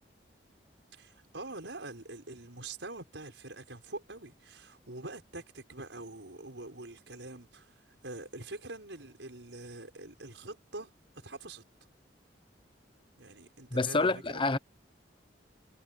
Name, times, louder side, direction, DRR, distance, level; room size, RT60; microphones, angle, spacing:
voice 1, 0.9-11.6 13.2-14.4, right 2 dB, 90° right, 5.5 m, -45 dB
voice 2, 13.7-14.6, left 3 dB, 30° left, 1.0 m, -27 dB
head